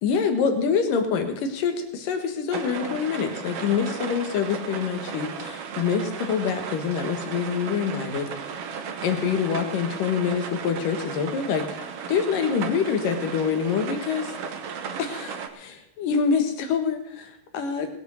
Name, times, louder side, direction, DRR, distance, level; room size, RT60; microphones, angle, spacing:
voice 1, 0.0-8.3 9.0-14.3 15.0-17.9, left 6 dB, 85° left, 6 dB, 3.3 m, -26 dB
sound 1, 2.5-15.5, right 6 dB, 60° right, 1.8 m, -35 dB
19.5 x 8.0 x 6.4 m, 0.74 s
omnidirectional pair, 3.8 m